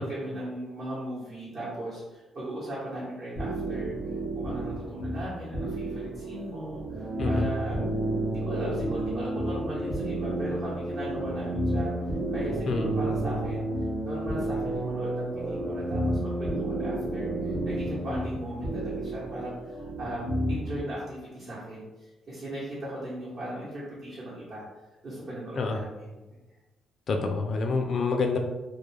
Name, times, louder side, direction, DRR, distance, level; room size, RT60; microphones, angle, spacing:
voice 1, 0.0-3.9 4.3-7.8 8.3-11.9 12.3-13.6 14.0-19.5 20.0-24.6 25.0-26.2, right 1 dB, 50° right, -9 dB, 1.0 m, -37 dB
sound 1, 3.4-20.8, right 1 dB, 80° right, 0.9 m, -33 dB
sound 2, 6.9-18.2, right 1 dB, 35° right, 0.4 m, -33 dB
voice 2, 27.1-28.4, left 4 dB, 50° left, 3 dB, 0.3 m, -27 dB
2.2 x 2.2 x 3.1 m, 1.1 s
cardioid pair, 90°, 0 cm